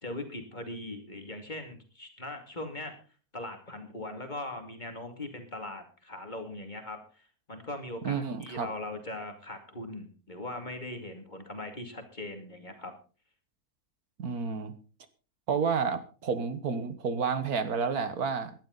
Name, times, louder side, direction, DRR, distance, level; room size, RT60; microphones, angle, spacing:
voice 1, 0.0-3.0 3.3-13.0, left 2 dB, 30° left, 5 dB, 2.6 m, -40 dB
voice 2, 8.0-8.7 14.2-14.7 15.5-18.5, right 5 dB, 75° right, 11 dB, 1.8 m, -30 dB
17.5 x 12.0 x 4.0 m, 0.36 s
omnidirectional pair, 1.6 m